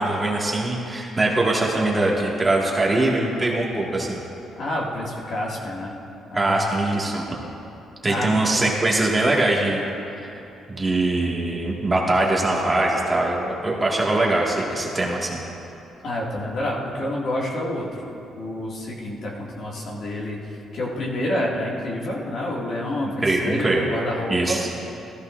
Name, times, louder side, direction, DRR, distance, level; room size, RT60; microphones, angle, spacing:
voice 1, 0.0-4.2 6.3-7.2 8.0-9.9 10.7-15.4 23.0-23.9 24.3-24.7, right 2 dB, 20° right, -3 dB, 1.9 m, -22 dB
voice 2, 4.6-5.9 6.3-6.7 8.1-9.0 16.0-18.1 18.3-24.6, left 1 dB, 60° left, -4 dB, 2.2 m, -28 dB
14.5 x 13.5 x 2.6 m, 2.8 s
cardioid pair, 90°, 0 cm